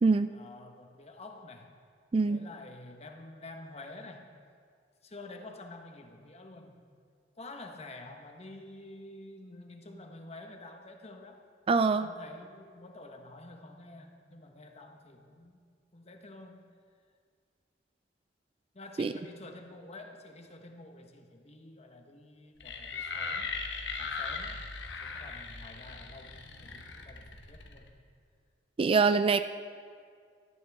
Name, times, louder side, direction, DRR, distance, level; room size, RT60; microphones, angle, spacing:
voice 1, 0.3-1.8 2.2-4.3 5.0-6.8 7.4-11.4 12.0-15.6 15.9-16.7 18.7-23.5 24.0-24.6 25.0-28.0, left 2 dB, 35° left, 4 dB, 1.2 m, -49 dB
voice 2, 2.1-2.5 11.7-12.1 19.0-19.1 28.8-29.4, right 4 dB, 30° right, 11 dB, 0.3 m, -24 dB
sound 1, 22.6-27.9, left 4 dB, 85° left, 1.2 m, -39 dB
17.5 x 14.0 x 3.6 m, 2.1 s
head